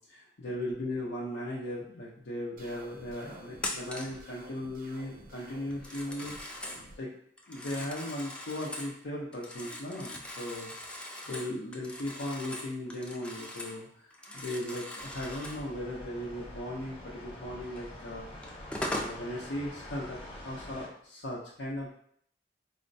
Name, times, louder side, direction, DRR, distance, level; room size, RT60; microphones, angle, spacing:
voice 1, 0.1-6.7 7.0-7.1 7.5-11.0 11.3-18.3 18.9-20.2 20.4-22.0, left 1 dB, 85° left, -5 dB, 0.6 m, -37 dB
sound 1, 2.6-7.0, right 2 dB, 55° right, 0.6 m, -51 dB
Telephone, 3.6-4.2 5.7-6.8 7.4-8.9 9.3-13.8 14.1-15.7 17.8-17.9 18.4-19.2, left 1 dB, 5° left, 0.3 m, -40 dB
sound 2, 15.0-20.9, left 1 dB, 30° left, 0.9 m, -46 dB
4.2 x 2.0 x 2.6 m, 0.65 s
head